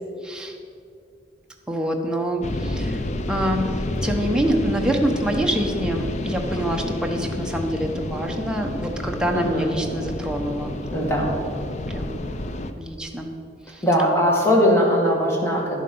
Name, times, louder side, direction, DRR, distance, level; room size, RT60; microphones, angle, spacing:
voice 1, 0.2-0.6 1.7-3.0 3.3-10.7 11.2-11.3 11.9-12.2 12.8-13.3 13.7-13.8, right 1 dB, 5° right, 1 dB, 0.9 m, -26 dB
sound 1, 2.4-12.7, left 1 dB, 40° left, 0.5 m, -29 dB
voice 2, 9.3-9.8 10.9-11.3 13.8-15.8, equal, 15° left, -2 dB, 1.9 m, -20 dB
11.5 x 7.2 x 5.4 m, 2.4 s
head